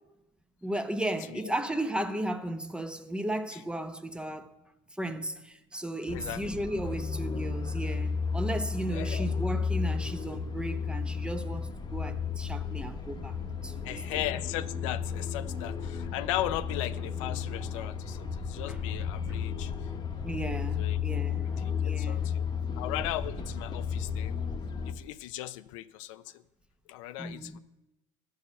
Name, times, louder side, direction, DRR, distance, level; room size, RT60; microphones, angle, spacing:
voice 1, 0.6-4.6 5.0-13.4 13.6-14.2 18.7-18.8 19.3-19.4 20.2-22.4 27.2-27.6, right 1 dB, 5° right, 0.7 m, -35 dB
voice 2, 6.1-6.4 8.9-9.3 13.8-19.7 20.6-21.0 21.6-22.4 22.8-24.4 24.8-26.4 26.9-27.6, left 14 dB, 80° left, 0.4 m, -37 dB
sound 1, 6.1-24.9, left 6 dB, 25° left, 1.0 m, -33 dB
12.5 x 4.7 x 7.0 m
supercardioid pair, 90°, 16 cm